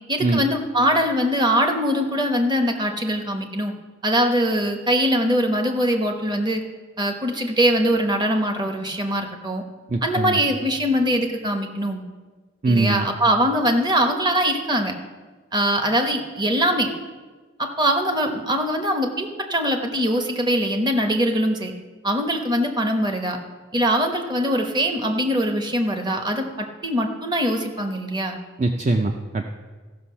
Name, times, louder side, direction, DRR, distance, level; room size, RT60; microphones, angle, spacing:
voice 1, 0.1-3.7 4.0-6.6 7.0-9.6 10.0-12.0 12.7-14.9 15.5-16.9 17.6-21.7 22.0-23.4 23.7-28.4, equal, 25° right, 4 dB, 1.0 m, -22 dB
voice 2, 9.9-10.4 12.6-13.1 28.6-29.5, right 2 dB, 40° right, 5 dB, 0.5 m, -22 dB
14.5 x 6.1 x 5.7 m, 1.4 s
head